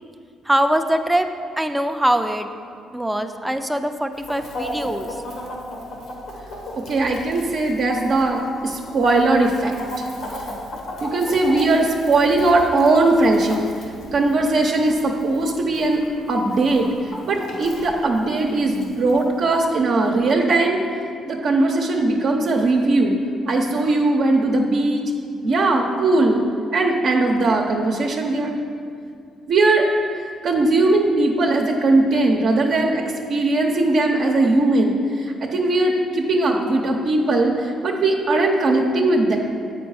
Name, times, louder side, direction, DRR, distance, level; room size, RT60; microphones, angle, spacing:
voice 1, 0.4-1.3 1.6-2.5 2.9-5.2, right 1 dB, 5° right, 7 dB, 0.5 m, -22 dB
Chicken rooster, 4.1-19.7, left 1 dB, 80° left, 1.3 m, -36 dB
voice 2, 6.9-10.1 11.0-13.7 14.1-16.0 16.3-16.9 17.2-20.8 21.3-23.2 23.5-25.0 25.4-26.4 26.7-28.5 29.5-29.9 30.4-33.0 33.3-39.4, right 2 dB, 65° right, 0 dB, 0.7 m, -19 dB
7.9 x 5.1 x 4.8 m, 2.3 s
cardioid pair, 90°, 0 cm